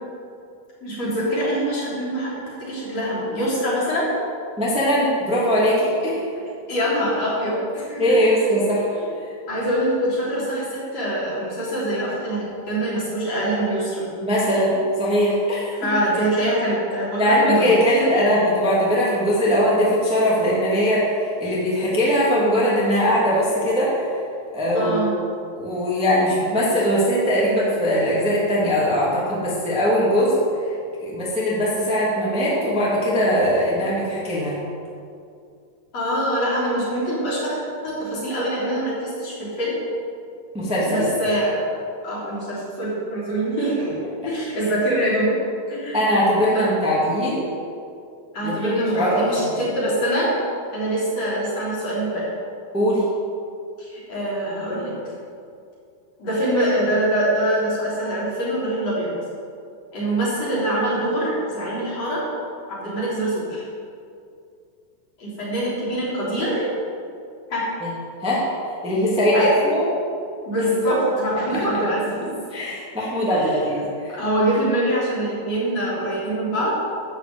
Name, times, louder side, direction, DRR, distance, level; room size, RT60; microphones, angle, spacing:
voice 1, 0.8-2.3 2.6-4.1 6.7-8.0 9.0-9.1 9.5-14.0 15.8-17.7 18.0-18.1 24.7-25.1 35.9-37.6 37.8-39.8 40.9-41.6 42.0-45.4 45.7-46.0 48.3-50.3 50.7-52.3 53.8-54.9 56.2-59.1 59.9-62.2 62.7-63.6 65.2-66.7 67.5-67.6 69.3-69.5 70.5-72.3 73.3-73.7 74.1-76.7, right 1 dB, 35° left, -8 dB, 4.1 m, -24 dB
voice 2, 4.6-6.2 8.0-8.8 14.2-15.9 17.2-24.1 24.5-25.0 25.5-30.4 31.0-34.6 40.5-41.1 45.9-47.5 48.4-49.5 52.7-53.0 67.8-67.9 68.2-68.5 68.8-69.8 72.5-74.1, equal, 5° right, -7 dB, 0.7 m, -20 dB
13.5 x 5.9 x 7.9 m, 2.4 s
omnidirectional pair, 5.6 m